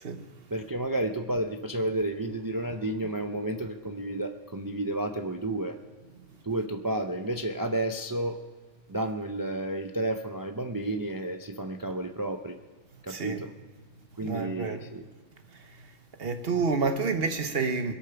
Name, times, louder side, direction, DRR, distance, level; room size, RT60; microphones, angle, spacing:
voice 1, 0.5-5.8 6.4-8.4 8.9-12.6 13.0-13.5 14.2-15.1, right 1 dB, 25° right, 0.4 m, -31 dB
voice 2, 13.1-13.4 14.2-14.8 15.5-15.6 16.2-17.9, right 4 dB, 55° right, 1.1 m, -29 dB
21.0 x 8.6 x 5.8 m
omnidirectional pair, 1.2 m